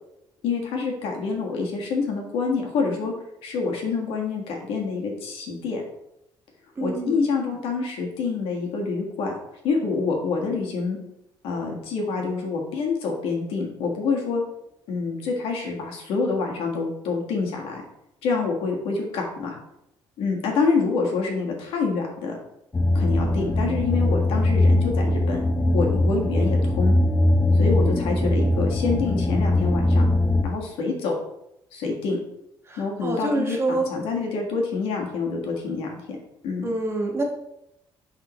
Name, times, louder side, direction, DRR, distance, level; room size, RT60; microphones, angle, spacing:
voice 1, 0.4-3.1 3.4-5.8 6.8-9.3 9.6-11.0 11.4-14.4 14.9-17.8 18.2-19.5 20.2-22.4 22.9-25.4 25.7-26.9 27.5-30.0 30.4-31.1 31.7-32.2 32.8-36.2 36.4-36.7, left 4 dB, 80° left, 1 dB, 1.6 m, -26 dB
voice 2, 6.7-7.2 32.7-33.9 36.6-37.2, right 2 dB, 30° right, 0 dB, 1.5 m, -26 dB
sound 1, 22.7-30.4, left 1 dB, 20° left, 0.5 m, -21 dB
10.5 x 3.7 x 3.1 m, 0.82 s
cardioid pair, 115°, 9 cm